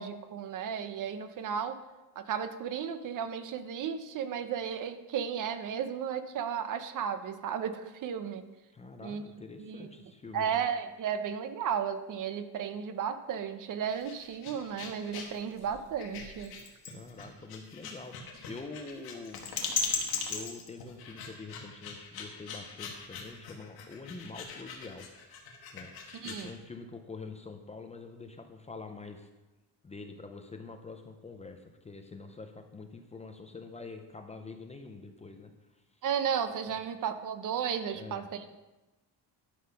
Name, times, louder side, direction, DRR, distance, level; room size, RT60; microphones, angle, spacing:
voice 1, 0.0-1.8 2.2-8.4 9.0-9.2 9.6-9.9 10.3-16.5 26.1-26.5 36.0-38.6, right 8 dB, 50° right, 10 dB, 0.7 m, -34 dB
voice 2, 8.7-10.6 16.9-19.5 20.3-25.1 25.7-25.9 26.2-29.3 29.8-36.0 36.7-36.8 37.9-38.3, left 3 dB, 15° left, 5 dB, 0.5 m, -45 dB
sound 1, 13.8-26.5, left 5 dB, 60° left, 1.8 m, -39 dB
11.5 x 5.7 x 5.7 m, 1.1 s
cardioid pair, 170°, 41 cm